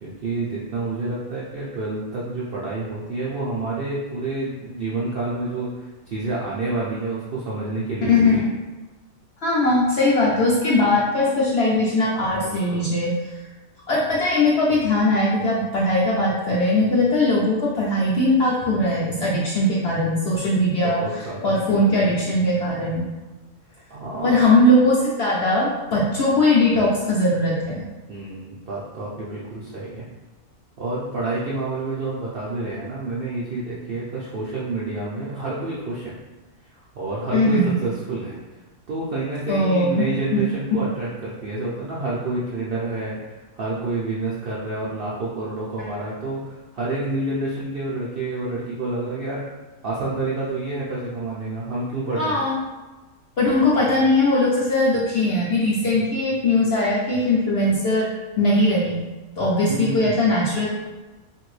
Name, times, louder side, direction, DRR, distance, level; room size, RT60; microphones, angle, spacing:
voice 1, 0.0-8.4 12.3-12.9 20.4-20.6 20.8-21.6 23.9-24.4 28.1-30.1 30.8-36.1 36.9-38.4 38.9-49.4 49.8-52.4 59.6-60.1, right 2 dB, 70° right, -7 dB, 0.5 m, -29 dB
voice 2, 8.1-8.5 9.4-13.1 13.9-21.0 21.4-23.0 24.2-27.8 37.3-37.7 39.5-40.4 40.7-40.8 45.8-45.9 52.2-52.5 53.4-58.1 58.4-59.0 59.4-60.7, left 1 dB, 65° left, -6 dB, 0.6 m, -20 dB
2.8 x 2.6 x 3.1 m, 1.2 s
omnidirectional pair, 1.5 m